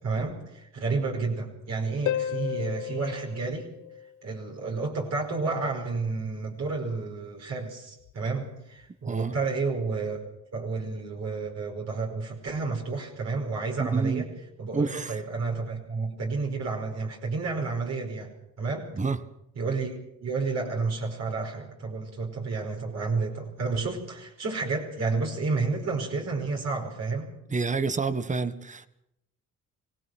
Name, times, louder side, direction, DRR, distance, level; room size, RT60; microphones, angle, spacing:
voice 1, 0.0-3.7 4.2-10.2 10.5-14.3 14.6-18.9 19.6-20.0 20.2-27.3, right 4 dB, 60° right, 5.2 m, -31 dB
Harp, 2.1-4.6 8.1-8.2, left 11 dB, 80° left, 1.0 m, -33 dB
voice 2, 9.0-9.3 13.8-14.3 14.7-15.2 18.9-19.2 27.5-28.9, right 4 dB, 25° right, 1.5 m, -28 dB
25.5 x 18.5 x 6.2 m
cardioid pair, 90°, 30 cm